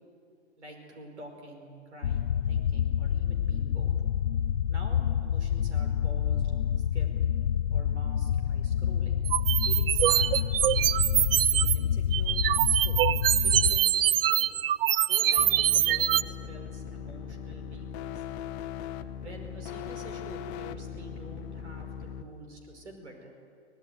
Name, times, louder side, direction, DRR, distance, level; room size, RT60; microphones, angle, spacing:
voice 1, 0.6-3.9 4.7-6.5 6.8-7.2 7.7-9.2 9.7-11.0 11.5-13.1 13.4-14.5 15.1-18.2 19.2-23.3, right 1 dB, 75° right, 3 dB, 5.4 m, -48 dB
sound 1, 2.0-13.8, left 9 dB, 80° left, 0.6 m, -28 dB
sound 2, 9.2-11.8 12.1-16.2, right 11 dB, 55° right, 0.7 m, -24 dB
sound 3, 15.4-22.2, left 7 dB, 30° left, 1.0 m, -39 dB
24.0 x 18.5 x 9.2 m, 2.3 s
figure-of-eight pair, 110°, 34 cm